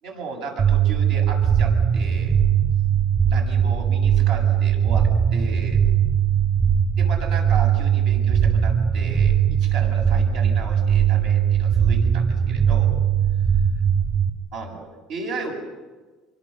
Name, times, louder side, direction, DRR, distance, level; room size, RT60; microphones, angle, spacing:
voice 1, 0.0-2.4 3.3-5.8 7.0-12.9 14.5-15.5, right 4 dB, 75° right, 3 dB, 7.6 m, -35 dB
sound 1, 0.6-14.3, right 8 dB, 50° right, 4.0 m, -20 dB
26.0 x 24.0 x 6.8 m, 1.3 s
cardioid pair, 150°, 0 cm